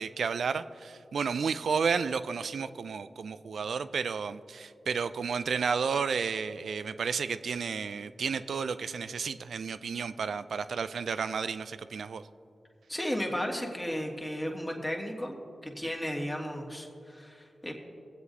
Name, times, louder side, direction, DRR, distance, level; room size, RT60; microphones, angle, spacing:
voice 1, 0.0-12.2, right 5 dB, 80° right, 13 dB, 0.3 m, -32 dB
voice 2, 12.9-15.3 15.6-17.7, equal, 15° left, 0 dB, 1.9 m, -34 dB
20.5 x 7.9 x 2.7 m, 2.4 s
cardioid pair, 40°, 0 cm